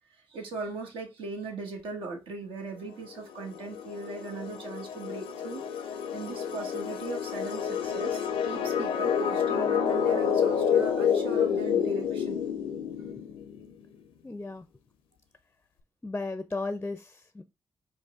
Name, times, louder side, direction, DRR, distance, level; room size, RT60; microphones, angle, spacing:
voice 1, 0.1-12.4, right 3 dB, 75° right, 1.4 m, -39 dB
sound 1, 3.2-13.7, left 7 dB, 80° left, 0.5 m, -29 dB
voice 2, 14.2-14.6 16.0-17.4, left 3 dB, 20° left, 0.5 m, -35 dB
4.6 x 2.4 x 3.6 m
hypercardioid pair, 45°, 9 cm